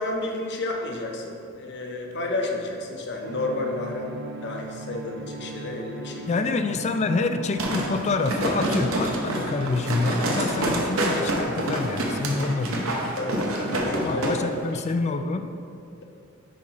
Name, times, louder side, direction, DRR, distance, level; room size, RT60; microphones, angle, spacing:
voice 1, 0.0-6.4 13.2-14.7, left 2 dB, 55° left, 2 dB, 0.8 m, -31 dB
sound 1, 3.2-10.5, right 2 dB, 55° right, 0.5 m, -39 dB
voice 2, 6.3-13.3 13.9-15.5, left 3 dB, 30° left, 9 dB, 0.3 m, -27 dB
sound 2, 7.6-14.3 14.7-14.8, right 1 dB, 75° right, 1.0 m, -27 dB
5.1 x 4.0 x 5.4 m, 2.5 s
head